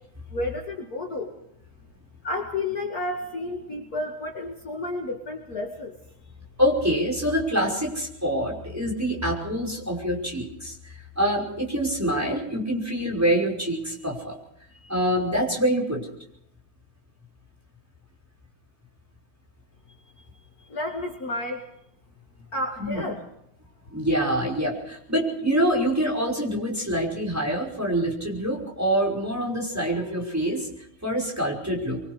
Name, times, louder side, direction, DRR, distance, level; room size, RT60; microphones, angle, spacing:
voice 1, 0.3-1.3 2.2-6.0 20.6-21.7 22.5-23.2, left 2 dB, 45° left, 1 dB, 2.4 m, -31 dB
voice 2, 6.6-14.4 14.8-16.1 22.8-23.0 23.9-32.0, equal, 5° right, -1 dB, 5.4 m, -26 dB
25.5 x 24.0 x 5.0 m, 0.76 s
omnidirectional pair, 2.3 m